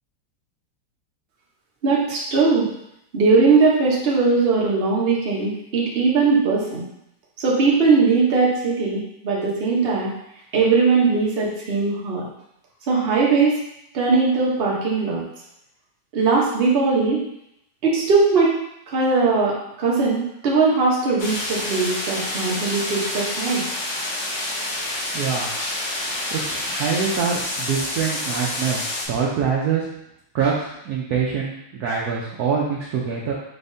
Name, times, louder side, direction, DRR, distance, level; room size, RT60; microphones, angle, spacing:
voice 1, 1.8-2.7 3.1-6.9 7.4-10.1 10.5-12.2 12.9-13.6 13.9-15.2 16.1-17.2 17.8-18.6 18.9-23.6, right 4 dB, 50° right, -4 dB, 0.7 m, -19 dB
sound 1, 21.2-29.0, left 1 dB, 75° left, 0.6 m, -28 dB
voice 2, 25.1-25.5 26.3-28.8 29.1-29.8 30.3-33.3, right 6 dB, 80° right, -3 dB, 0.8 m, -24 dB
4.6 x 3.4 x 2.6 m, 0.79 s
omnidirectional pair, 2.3 m